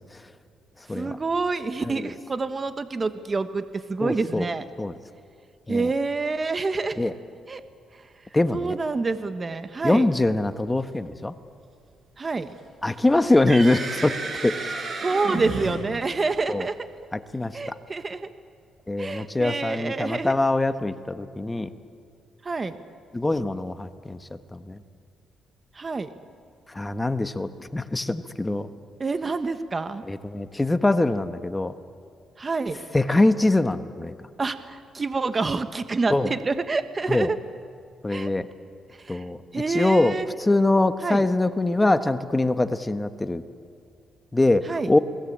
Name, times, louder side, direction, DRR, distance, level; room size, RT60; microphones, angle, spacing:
voice 1, 0.9-4.6 5.7-7.1 7.5-7.6 7.9-8.0 8.5-10.1 12.2-12.5 15.0-16.8 17.5-18.3 19.0-20.3 22.4-22.8 25.7-26.1 29.0-30.0 32.4-32.8 34.4-37.4 38.1-38.3 38.9-39.2 39.5-40.3 41.0-41.3 44.6-44.9, right 3 dB, 30° right, 10 dB, 1.3 m, -27 dB
voice 2, 4.0-4.5 4.8-4.9 5.7-5.9 7.0-7.1 8.3-8.7 9.8-11.3 12.8-14.7 16.5-16.7 17.1-17.7 18.9-21.7 23.1-24.2 24.5-24.8 26.7-28.7 30.1-31.7 32.9-34.1 36.1-36.3 37.1-37.3 38.0-38.5 39.1-39.4 39.7-40.1 40.4-43.4 44.3-45.0, left 2 dB, 15° left, 10 dB, 1.2 m, -23 dB
sound 1, 13.0-16.6, right 3 dB, 45° right, 5.9 m, -32 dB
28.5 x 20.5 x 8.7 m, 2.4 s
cardioid pair, 90°, 0 cm